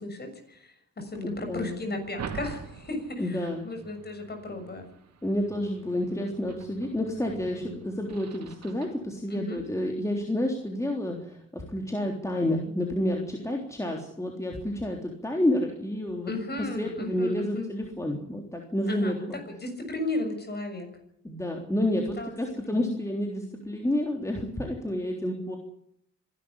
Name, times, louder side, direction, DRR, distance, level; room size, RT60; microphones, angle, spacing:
voice 1, 0.0-4.9 9.3-9.6 16.3-17.7 18.9-20.9 22.2-22.3 22.7-22.9, left 2 dB, 35° left, 6 dB, 6.8 m, -35 dB
sound 1, 1.0-9.0, right 6 dB, 60° right, 2.5 m, -45 dB
voice 2, 1.2-1.8 3.2-3.7 5.2-16.3 16.6-19.4 21.2-25.6, left 1 dB, 10° left, 1 dB, 3.6 m, -30 dB
25.5 x 12.5 x 10.0 m, 0.73 s
cardioid pair, 90°, 30 cm